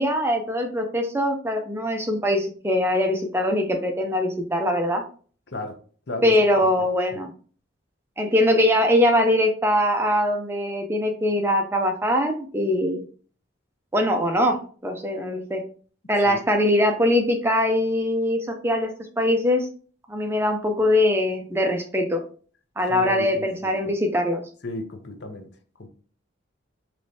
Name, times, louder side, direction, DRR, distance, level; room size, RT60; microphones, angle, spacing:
voice 1, 0.0-5.0 6.2-7.3 8.2-13.0 13.9-15.6 16.1-18.4 18.6-18.9 19.2-19.7 20.1-22.2 22.8-24.4, left 1 dB, 10° right, 0.5 m, -22 dB
voice 2, 22.9-23.7 24.6-25.5 25.8-25.9, left 2 dB, 55° left, 0.7 m, -34 dB
4.9 x 3.1 x 2.7 m
head